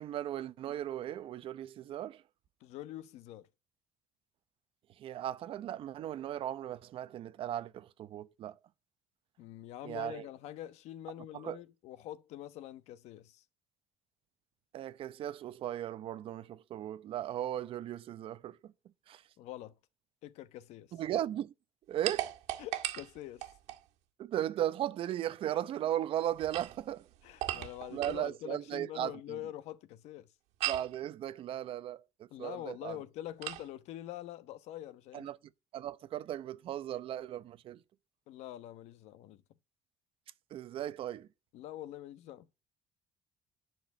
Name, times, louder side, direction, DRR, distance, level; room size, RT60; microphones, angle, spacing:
voice 1, 0.0-2.2 5.0-8.6 9.8-10.3 11.3-11.6 14.7-18.7 19.1-19.2 20.9-21.5 21.9-22.3 24.2-27.1 27.5-29.4 30.6-33.0 35.1-35.4 35.7-37.8 40.5-41.3, right 12 dB, 55° right, 0.7 m, -37 dB
voice 2, 2.6-3.5 9.4-13.4 19.4-19.7 20.2-20.9 22.6-23.5 27.2-30.3 32.3-35.3 38.3-39.4 41.5-42.5, left 13 dB, 80° left, 1.1 m, -45 dB
sound 1, 22.0-23.8 26.3-28.3 30.6-31.0 33.4-33.7, right 14 dB, 85° right, 1.8 m, -38 dB
11.0 x 6.0 x 7.3 m
cardioid pair, 150°, 11 cm